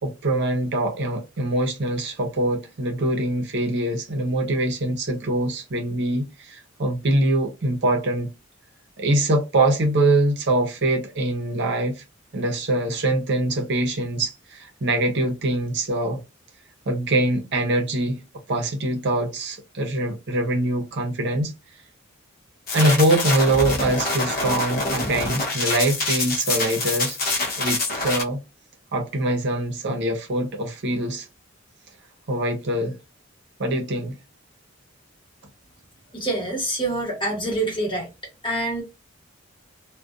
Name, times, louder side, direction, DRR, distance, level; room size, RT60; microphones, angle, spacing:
voice 1, 0.0-8.3 9.0-12.0 12.3-16.2 16.9-18.2 18.5-21.5 22.7-27.2 27.6-28.4 28.9-31.3 32.3-33.0 33.6-34.2, right 1 dB, 60° right, 0.7 m, -23 dB
sound 1, 22.7-28.2, left 2 dB, 50° left, 0.8 m, -25 dB
voice 2, 36.1-38.1 38.4-38.8, right 1 dB, 25° left, 1.1 m, -26 dB
2.4 x 2.2 x 2.4 m
head